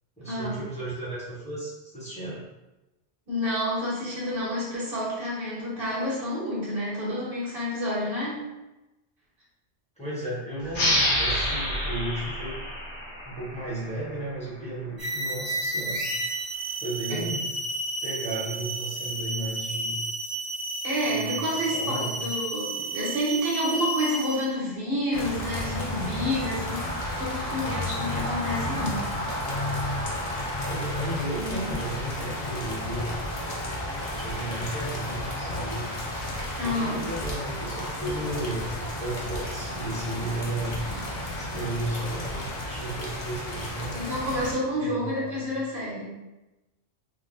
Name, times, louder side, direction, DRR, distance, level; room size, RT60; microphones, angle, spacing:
voice 1, 0.2-2.4 10.0-12.6 13.2-16.1 16.8-17.5 18.0-20.0 21.1-22.1 30.7-33.1 34.0-35.9 36.6-40.7 41.4-43.9 44.8-45.5, right 1 dB, 5° left, -9 dB, 0.9 m, -34 dB
voice 2, 3.3-8.4 17.1-17.2 20.8-29.0 36.6-37.0 43.9-46.1, equal, 55° right, -7 dB, 1.3 m, -29 dB
sound 1, 10.7-14.0, equal, 85° left, 1.1 m, -27 dB
sound 2, 15.0-24.5, right 2 dB, 70° right, 1.1 m, -32 dB
sound 3, 25.1-44.5, left 1 dB, 50° left, 0.5 m, -32 dB
3.3 x 2.3 x 2.5 m, 1.0 s
omnidirectional pair, 1.1 m